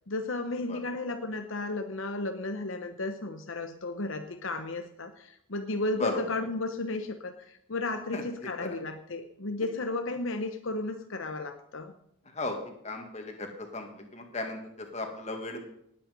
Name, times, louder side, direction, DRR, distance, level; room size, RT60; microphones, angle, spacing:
voice 1, 0.1-11.9, left 2 dB, 65° left, 7 dB, 0.9 m, -34 dB
voice 2, 12.8-13.5 13.7-13.9 14.1-14.6 14.9-15.6, left 2 dB, 30° left, 3 dB, 2.2 m, -34 dB
19.0 x 8.9 x 5.4 m, 0.74 s
head